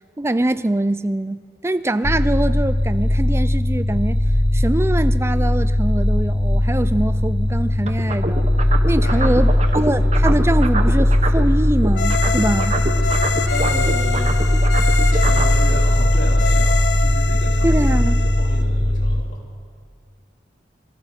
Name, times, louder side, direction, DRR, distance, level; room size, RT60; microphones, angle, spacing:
voice 1, 0.2-4.2 4.5-8.5 8.9-12.8 17.6-18.3, right 1 dB, 15° right, 14 dB, 0.4 m, -23 dB
sound 1, 2.0-19.2, left 1 dB, 25° left, 0.7 m, -18 dB
sound 2, 7.9-11.5 11.8-15.6, right 3 dB, 35° right, 1.2 m, -26 dB
voice 2, 9.0-9.9 13.0-14.3 15.1-19.4, equal, 85° left, -2 dB, 3.9 m, -33 dB
sound 3, 11.9-18.6, left 5 dB, 70° left, 1.2 m, -26 dB
27.0 x 23.0 x 4.5 m, 2.2 s
head